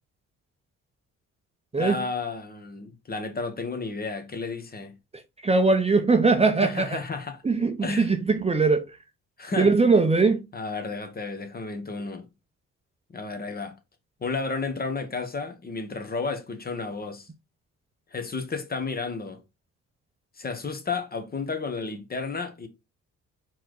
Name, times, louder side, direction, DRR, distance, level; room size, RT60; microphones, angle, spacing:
voice 1, 1.8-4.9 6.6-7.4 7.8-8.1 9.4-9.7 10.5-12.3 13.1-13.7 14.2-17.3 18.1-19.4 20.4-22.7, left 4 dB, 30° left, 1.2 m, -32 dB
voice 2, 5.4-7.0 7.4-8.8 9.6-10.4, right 4 dB, 20° right, 0.7 m, -21 dB
4.5 x 3.1 x 3.8 m
cardioid pair, 90°, 30 cm